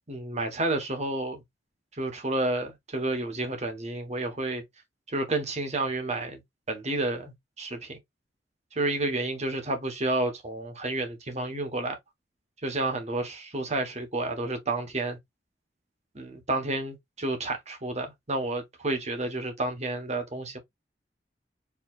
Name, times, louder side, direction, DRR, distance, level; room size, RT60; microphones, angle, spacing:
voice 1, 0.1-1.4 2.0-4.6 5.1-6.4 6.7-8.0 8.7-12.0 12.6-15.2 16.1-20.6, right 2 dB, 40° right, 1.3 m, -30 dB
4.6 x 3.3 x 2.4 m
head